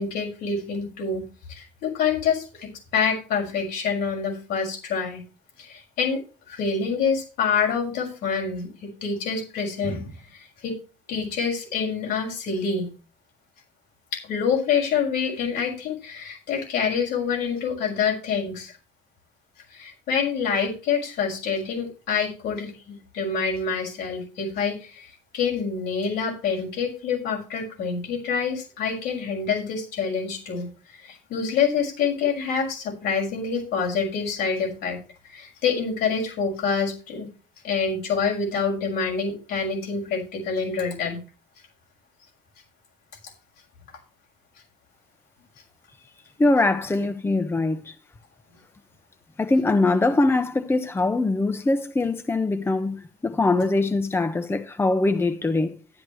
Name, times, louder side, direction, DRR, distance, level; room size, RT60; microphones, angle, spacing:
voice 1, 0.0-5.2 5.6-6.2 6.5-10.1 10.6-10.7 11.1-12.9 14.1-18.7 19.7-25.1 25.3-30.7 31.0-35.0 35.2-37.3 37.6-41.2, left 6 dB, 80° left, 6.2 m, -26 dB
voice 2, 46.4-47.9 49.4-55.8, left 2 dB, 15° left, 0.9 m, -22 dB
12.5 x 10.5 x 3.1 m
cardioid pair, 110°, 17 cm